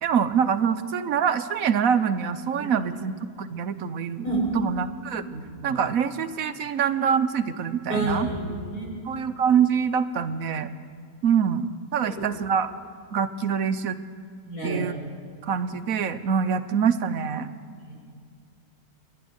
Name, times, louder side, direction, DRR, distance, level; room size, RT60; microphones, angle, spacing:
voice 1, 0.0-4.2 4.5-5.2 5.6-8.3 9.0-10.7 11.2-12.7 13.1-14.0 14.6-14.9 15.4-17.5, right 7 dB, 70° right, 11 dB, 1.2 m, -25 dB
voice 2, 5.3-5.8 7.9-8.9 14.4-14.8 17.8-17.9, right 2 dB, 80° left, -3 dB, 6.9 m, -29 dB
25.5 x 12.0 x 9.7 m, 2.2 s
omnidirectional pair, 1.6 m